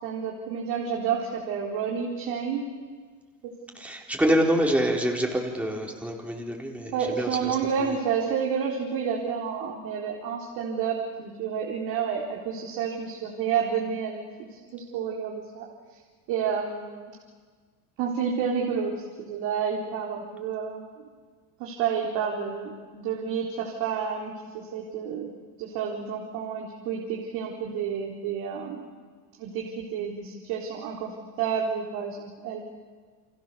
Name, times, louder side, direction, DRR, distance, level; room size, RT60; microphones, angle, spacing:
voice 1, 0.0-2.7 4.3-4.4 6.9-14.2 14.5-15.7 16.3-17.1 18.0-21.1 21.6-25.3 25.6-28.8 29.4-32.6, right 7 dB, 65° right, -1 dB, 4.2 m, -30 dB
voice 2, 3.8-7.5 7.8-7.9, equal, 5° right, 0 dB, 4.0 m, -26 dB
30.0 x 25.0 x 7.0 m, 1.6 s
supercardioid pair, 120°, 39 cm